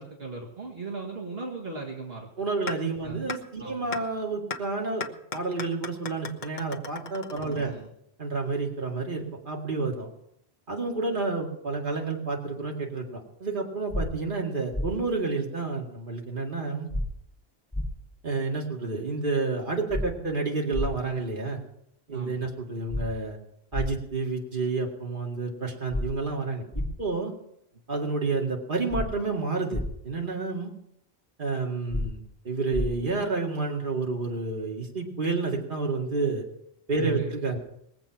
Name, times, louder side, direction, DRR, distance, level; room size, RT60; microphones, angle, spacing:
voice 1, 0.0-2.3 3.0-3.3 3.6-4.0 7.4-7.9 22.1-22.5 37.0-37.3, right 3 dB, 65° right, -1 dB, 2.2 m, -38 dB
voice 2, 2.4-5.1 5.3-7.7 8.2-10.1 10.7-16.9 18.2-21.6 22.1-23.4 23.7-27.3 27.9-30.7 31.4-36.4 36.9-37.6, right 3 dB, 50° right, 0 dB, 2.4 m, -30 dB
sound 1, 2.7-2.8 3.3-3.4 3.9-4.0 4.5-4.6 5.0-7.9, left 5 dB, 45° left, 1.2 m, -35 dB
sound 2, 13.9-14.0 14.7-14.9 16.9-17.1 17.7-17.9 19.9-20.1 20.7-20.9 22.9-23.0 23.7-23.9 25.9-26.0 26.7-26.9 28.9-29.1 29.7-29.9 31.9-32.0 32.7-32.9, left 1 dB, ahead, 5.8 m, -28 dB
21.0 x 8.1 x 5.9 m, 0.76 s
omnidirectional pair, 1.1 m